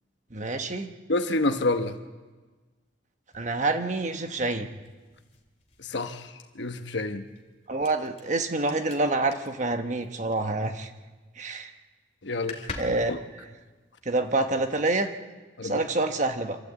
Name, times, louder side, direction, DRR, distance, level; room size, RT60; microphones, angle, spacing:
voice 1, 0.3-0.9 3.3-4.7 7.7-10.9 11.4-11.7 12.8-13.1 14.0-15.1 15.6-16.6, right 2 dB, 40° right, 7 dB, 1.2 m, -27 dB
voice 2, 1.1-2.0 5.8-6.3 6.5-7.2 12.2-12.7 13.1-13.2 15.6-15.8, left 2 dB, 65° left, 8 dB, 1.2 m, -28 dB
sound 1, 3.3-11.0 11.3-11.7 12.0-12.1 12.3-14.7, left 3 dB, 35° left, 2.5 m, -46 dB
26.5 x 13.0 x 8.4 m, 1.3 s
head